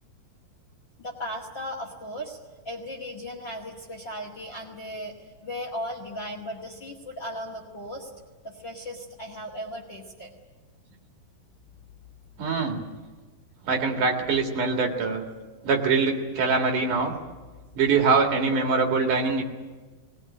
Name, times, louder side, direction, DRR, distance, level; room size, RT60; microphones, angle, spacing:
voice 1, 1.0-2.4 2.7-5.1 5.4-8.1 8.4-10.3, equal, 35° left, 0 dB, 1.9 m, -36 dB
voice 2, 12.4-12.8 13.6-15.2 15.6-17.1 17.8-19.4, right 4 dB, 55° right, 3 dB, 3.2 m, -23 dB
20.0 x 20.0 x 9.9 m, 1.3 s
omnidirectional pair, 4.6 m